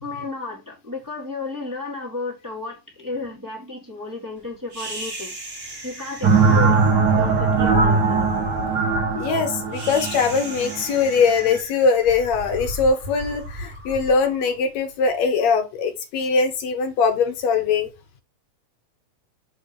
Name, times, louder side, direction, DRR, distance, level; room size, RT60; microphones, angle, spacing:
voice 1, 0.0-5.3 5.8-6.8 7.1-8.5, left 3 dB, 10° right, 0.9 m, -33 dB
sound 1, 4.7-15.1, equal, 40° right, 1.3 m, -36 dB
sound 2, 6.2-11.6, right 4 dB, 70° right, 0.9 m, -20 dB
voice 2, 9.2-17.9, left 5 dB, 70° left, 1.8 m, -21 dB
7.0 x 2.7 x 5.1 m
omnidirectional pair, 3.6 m